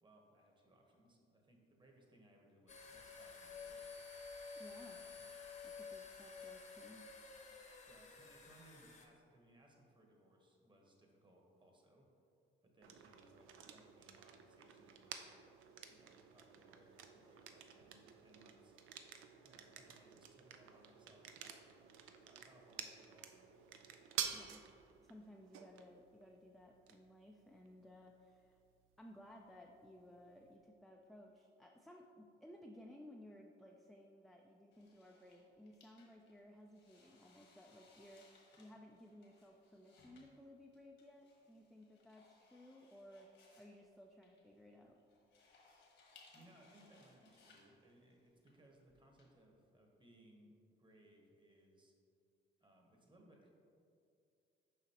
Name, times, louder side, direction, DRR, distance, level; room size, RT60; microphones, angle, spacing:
voice 1, 0.0-4.0 4.9-5.2 7.9-12.1 12.6-15.3 15.8-18.7 19.0-23.7 46.3-51.9 52.6-53.5, right 1 dB, 25° right, 1 dB, 1.1 m, -67 dB
sound 1, 2.7-9.1, left 5 dB, 35° left, 0.8 m, -52 dB
voice 2, 4.5-5.0 5.6-7.1 24.3-24.6 25.0-28.6 29.0-43.3 43.6-45.0, left 1 dB, ahead, 0 dB, 0.3 m, -59 dB
sound 2, 12.8-30.6, right 8 dB, 90° right, 0.4 m, -51 dB
sound 3, 34.7-49.2, left 3 dB, 70° left, 1.3 m, -68 dB
6.8 x 4.9 x 2.9 m, 2.5 s
cardioid pair, 90°, 20 cm